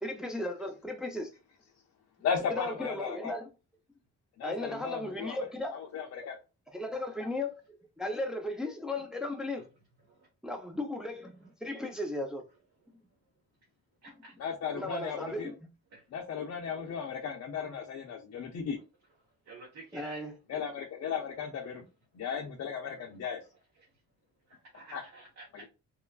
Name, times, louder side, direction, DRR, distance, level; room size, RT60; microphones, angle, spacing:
voice 1, 0.0-1.3 2.5-3.4 4.4-5.8 6.2-6.3 6.7-7.5 8.0-9.7 10.4-12.4 14.7-15.7 19.9-20.3, left 1 dB, ahead, 0.5 m, -36 dB
voice 2, 2.2-3.3 4.4-6.4 14.4-15.5 16.1-18.8 20.5-21.9 22.1-23.4 24.9-25.0 25.5-25.6, left 6 dB, 55° left, 0.6 m, -36 dB
voice 3, 14.0-14.3 15.9-16.0 19.4-20.3 24.5-25.6, right 2 dB, 55° right, 1.0 m, -50 dB
3.0 x 2.2 x 2.3 m
cardioid pair, 90°, 30 cm